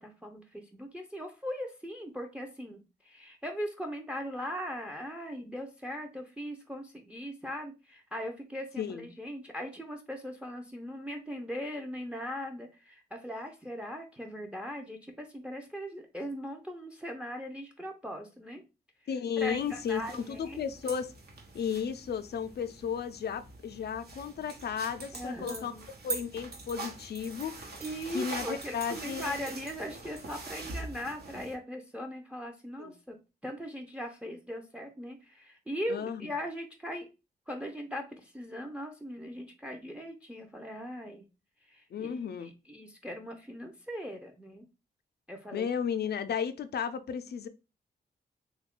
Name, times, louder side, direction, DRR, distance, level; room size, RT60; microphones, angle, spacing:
voice 1, 0.0-18.6 19.4-20.6 25.1-25.8 27.8-33.2 33.4-37.1 37.5-41.2 41.7-44.6 45.3-45.7, equal, 5° right, 3 dB, 0.5 m, -39 dB
voice 2, 8.8-9.1 19.1-21.1 21.5-25.7 26.0-27.7 28.1-29.4 32.8-32.9 35.9-36.3 41.9-42.5 45.5-47.5, left 7 dB, 70° left, 11 dB, 0.4 m, -34 dB
sound 1, 19.4-31.5, right 3 dB, 65° right, 0.9 m, -43 dB
3.1 x 2.3 x 3.5 m, 0.29 s
cardioid pair, 80°, 18 cm